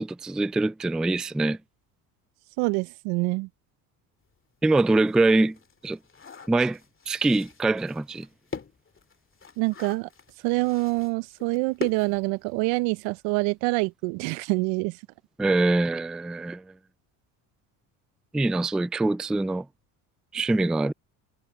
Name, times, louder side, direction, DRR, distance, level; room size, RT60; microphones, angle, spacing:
voice 1, 0.0-1.6 4.6-5.6 5.8-6.0 6.5-6.8 7.1-8.3 15.4-16.6 18.3-19.7 20.3-20.9, right 2 dB, ahead, 0.3 m, -24 dB
voice 2, 2.6-3.5 9.6-10.1 10.4-15.0, right 25 dB, 70° right, 0.7 m, -26 dB
sound 1, 4.3-4.4 4.8-12.9 13.2-13.3 13.6-13.8, left 5 dB, 25° left, 2.7 m, -42 dB
supercardioid pair, 75°, 47 cm